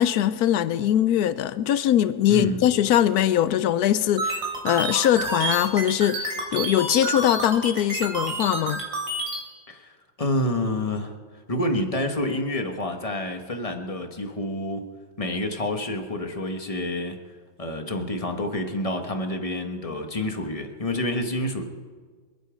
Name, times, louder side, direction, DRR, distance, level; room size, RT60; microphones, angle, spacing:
voice 1, 0.0-8.8, left 11 dB, 80° left, 0.8 m, -22 dB
voice 2, 2.3-2.6 9.7-9.9 10.2-11.1 11.5-14.9 15.2-17.2 17.6-21.6, left 1 dB, 20° left, 1.1 m, -28 dB
sound 1, 4.2-9.4, right 2 dB, 65° right, 3.8 m, -29 dB
27.0 x 9.3 x 5.1 m
omnidirectional pair, 2.2 m